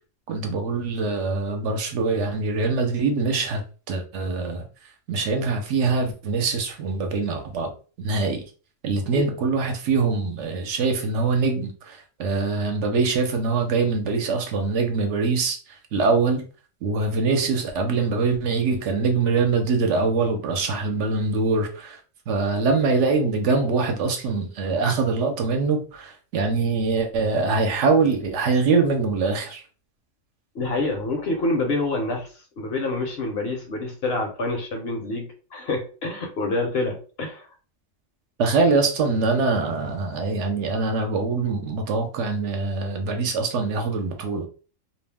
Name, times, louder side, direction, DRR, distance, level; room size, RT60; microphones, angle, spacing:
voice 1, 0.3-3.6 3.9-4.6 5.1-7.7 8.0-8.4 8.8-15.6 15.9-16.4 16.8-22.0 22.3-29.6 38.4-44.5, right 4 dB, 70° right, 0.9 m, -23 dB
voice 2, 30.5-32.3 32.6-37.5, left 2 dB, 60° left, 0.8 m, -27 dB
2.4 x 2.1 x 3.3 m
omnidirectional pair, 1.3 m